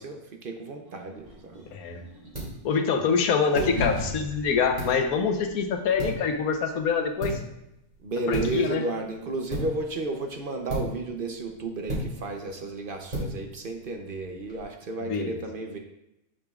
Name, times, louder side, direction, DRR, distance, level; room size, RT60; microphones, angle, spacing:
voice 1, 0.0-1.6 8.0-15.8, right 3 dB, 50° right, 3 dB, 0.7 m, -33 dB
sound 1, 0.8-3.2 3.5-7.5, equal, 80° right, 3.6 m, -38 dB
sound 2, 1.1-14.6, right 1 dB, 30° right, 2.6 m, -38 dB
voice 2, 2.6-7.4 8.3-8.8 15.0-15.4, left 5 dB, 80° left, 5 dB, 1.3 m, -25 dB
8.2 x 6.9 x 2.4 m, 0.84 s
omnidirectional pair, 1.5 m